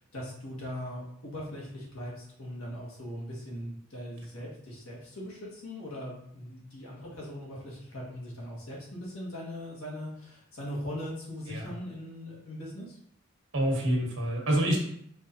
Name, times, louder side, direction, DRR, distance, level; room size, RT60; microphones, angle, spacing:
voice 1, 0.0-13.0, equal, 90° left, -4 dB, 1.5 m, -40 dB
voice 2, 13.5-14.8, right 1 dB, 85° right, -1 dB, 1.1 m, -27 dB
5.0 x 3.2 x 2.7 m, 0.70 s
head